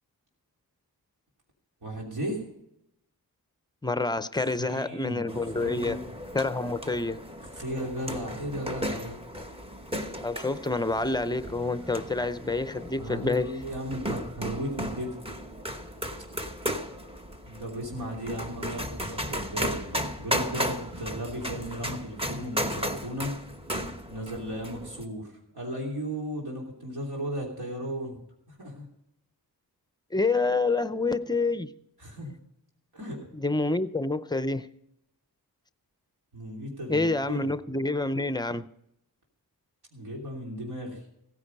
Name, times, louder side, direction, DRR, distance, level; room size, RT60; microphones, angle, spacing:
voice 1, 1.8-2.4 4.6-5.3 5.5-6.0 7.5-9.2 13.0-15.2 17.5-23.3 24.1-25.3 25.5-28.2 28.5-28.8 32.0-32.3 32.9-33.2 36.3-37.5 39.9-41.0, equal, 75° right, -2 dB, 3.2 m, -35 dB
voice 2, 3.8-6.0 6.3-7.2 10.2-13.6 30.1-31.7 33.3-34.7 36.9-38.7, left 3 dB, 10° left, 13 dB, 0.5 m, -27 dB
sound 1, 5.3-25.0, equal, 15° right, 1.0 m, -35 dB
16.0 x 9.9 x 5.3 m, 0.78 s
wide cardioid pair, 125°, 39 cm